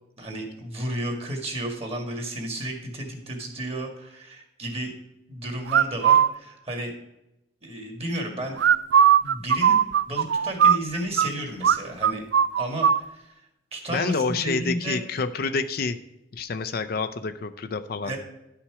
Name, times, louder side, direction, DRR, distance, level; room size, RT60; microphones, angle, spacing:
voice 1, 0.2-4.9 5.3-6.9 7.6-8.6 9.2-9.8 10.1-12.2 12.6-13.4 13.7-15.0 18.0-18.2, right 1 dB, 35° right, 3 dB, 2.0 m, -32 dB
sound 1, 5.7-6.3 8.6-11.3 11.6-11.8 12.0-13.0, right 8 dB, 70° right, 0.4 m, -18 dB
voice 2, 13.9-16.0 16.3-18.1, left 4 dB, 55° left, 11 dB, 0.5 m, -28 dB
11.0 x 5.8 x 4.8 m, 0.88 s
head